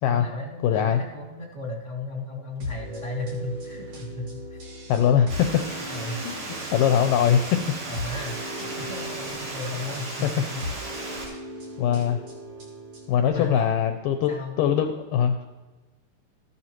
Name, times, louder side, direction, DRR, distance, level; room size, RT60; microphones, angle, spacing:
voice 1, 0.1-4.6 5.9-6.2 7.9-10.6 13.2-13.9 14.3-14.5, left 2 dB, 40° right, -4 dB, 1.0 m, -35 dB
voice 2, 0.6-1.0 4.9-5.6 6.2-7.6 11.8-12.2 13.1-14.3 14.6-15.5, left 9 dB, 80° left, 6 dB, 2.0 m, -22 dB
sound 1, 2.6-13.3, equal, 55° right, 4.2 m, -39 dB
Water, 5.3-11.3, right 2 dB, 80° right, 5.5 m, -36 dB
14.0 x 11.0 x 3.0 m, 1.2 s
omnidirectional pair, 4.4 m